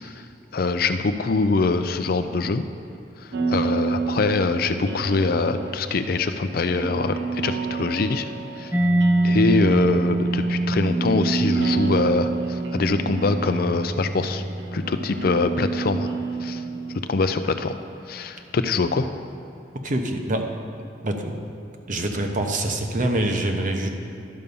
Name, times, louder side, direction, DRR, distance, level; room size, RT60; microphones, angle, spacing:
voice 1, 0.5-2.6 3.5-8.3 8.6-8.7 9.2-14.4 14.7-16.1 16.4-16.6 17.1-17.7 18.1-19.1, left 3 dB, 60° left, 9 dB, 0.5 m, -23 dB
sound 1, 3.3-17.0, right 4 dB, 90° right, 0.8 m, -29 dB
Mallet percussion, 8.7-16.2, right 2 dB, 10° right, 0.5 m, -25 dB
voice 2, 19.8-20.5 21.0-21.4 21.9-23.9, right 1 dB, 50° right, 4 dB, 0.9 m, -25 dB
11.0 x 5.4 x 6.9 m, 2.8 s
head